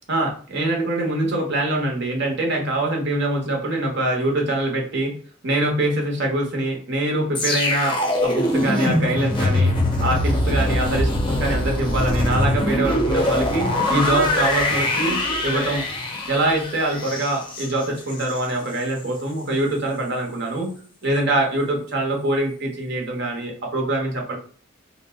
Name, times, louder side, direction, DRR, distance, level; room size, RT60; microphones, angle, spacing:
voice 1, 0.1-5.2 5.4-9.7 10.0-15.8 16.3-20.7 21.0-24.4, right 2 dB, 55° right, 1 dB, 0.8 m, -24 dB
sound 1, 7.4-18.5 18.8-19.0, left 1 dB, 25° left, 0.5 m, -22 dB
2.6 x 2.0 x 3.3 m, 0.43 s
head